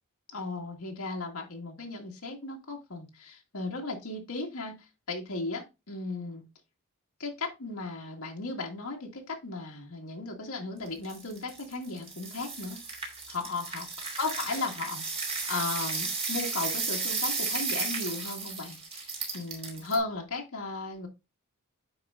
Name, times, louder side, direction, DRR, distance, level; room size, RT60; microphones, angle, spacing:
voice 1, 0.3-6.4 7.2-12.8 13.3-13.9 14.2-21.1, left 3 dB, 75° left, 0 dB, 2.0 m, -36 dB
sound 1, 10.9-20.0, right 4 dB, 30° right, 2.5 m, -34 dB
9.6 x 4.9 x 2.4 m, 0.26 s
head